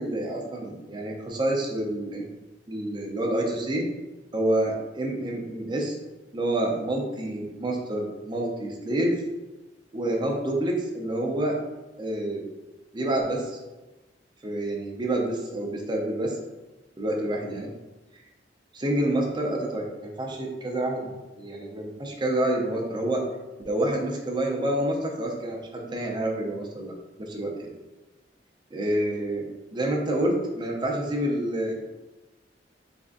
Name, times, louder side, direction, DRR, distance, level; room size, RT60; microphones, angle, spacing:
voice 1, 0.0-2.2 2.7-3.8 4.3-5.9 6.3-9.1 9.9-11.5 12.0-12.5 12.9-13.6 14.4-16.4 17.0-17.7 18.7-23.2 23.6-26.9 27.2-27.7 28.7-29.4 29.7-31.7, right 1 dB, 25° right, 0 dB, 0.6 m, -28 dB
3.8 x 3.4 x 2.5 m, 1.1 s
head